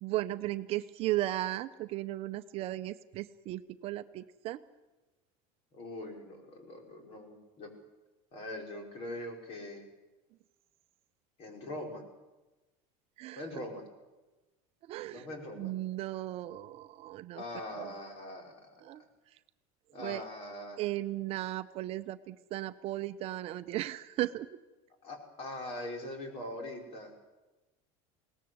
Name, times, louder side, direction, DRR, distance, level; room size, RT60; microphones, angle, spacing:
voice 1, 0.0-4.6 13.2-13.5 14.8-15.3 15.5-17.4 17.7-18.0 18.8-19.0 19.3-19.4 20.0-20.2 20.8-24.6, right 15 dB, 45° right, 10 dB, 0.7 m, -36 dB
voice 2, 5.7-7.7 8.3-9.9 11.4-12.0 13.4-13.8 15.1-15.7 17.4-18.8 19.9-20.9 25.0-27.1, left 1 dB, 40° left, 3 dB, 5.2 m, -42 dB
21.5 x 18.0 x 7.9 m, 1.1 s
cardioid pair, 155°, 14 cm